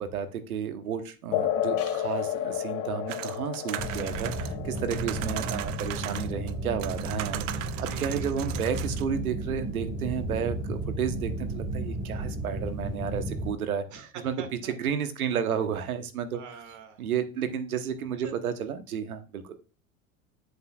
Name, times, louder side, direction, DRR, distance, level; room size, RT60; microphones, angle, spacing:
voice 1, 0.0-4.3 4.6-13.8 14.2-14.3 14.6-16.4 17.0-19.6, right 7 dB, 85° right, 9 dB, 1.2 m, -32 dB
sound 1, 1.3-8.3, left 10 dB, 65° left, 1.0 m, -33 dB
sound 2, 3.1-6.5 6.8-9.0, right 14 dB, 65° right, 0.8 m, -38 dB
sound 3, 3.8-13.5, right 2 dB, 25° right, 2.4 m, -33 dB
voice 2, 7.8-8.6 13.9-14.7 16.3-17.0 18.2-18.3, right 6 dB, 45° right, 7 dB, 2.1 m, -45 dB
8.5 x 7.7 x 2.4 m, 0.32 s
hypercardioid pair, 90°, 42 cm